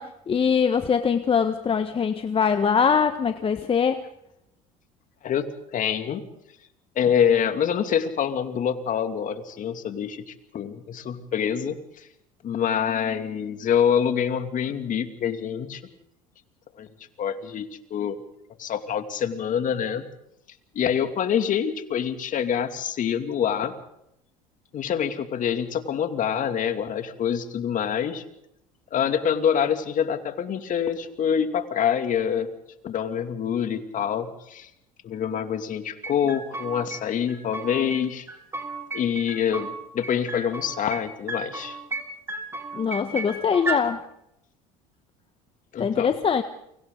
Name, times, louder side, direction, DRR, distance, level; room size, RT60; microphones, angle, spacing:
voice 1, 0.0-4.0 42.7-44.0 45.8-46.4, left 6 dB, 30° left, 8 dB, 1.4 m, -23 dB
voice 2, 5.2-6.2 7.0-12.1 12.4-15.8 16.8-16.9 17.2-18.2 18.6-20.1 20.7-23.7 24.7-28.2 28.9-32.5 32.8-34.7 35.0-38.3 38.9-41.8 45.7-46.1, left 8 dB, 45° left, 7 dB, 2.6 m, -26 dB
sound 1, 36.0-37.0 37.3-38.0 38.3-39.7 40.0-41.0 41.3-42.0 42.3-43.8, right 3 dB, 15° right, 3.9 m, -33 dB
29.5 x 24.5 x 4.0 m, 0.80 s
hypercardioid pair, 80°, 18 cm